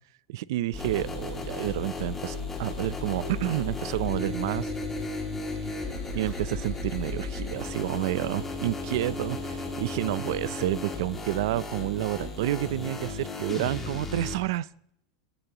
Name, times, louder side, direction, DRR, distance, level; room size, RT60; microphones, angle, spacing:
voice 1, 0.3-4.7 5.7-5.8 6.1-14.7, right 15 dB, 70° right, 20 dB, 0.5 m, -30 dB
sound 1, 0.7-14.3, left 3 dB, 10° left, 2.4 m, -34 dB
sound 2, 2.0-4.3 4.6-7.3, equal, 5° right, 7.3 m, -52 dB
20.5 x 15.0 x 3.0 m, 0.73 s
supercardioid pair, 150°, 2 cm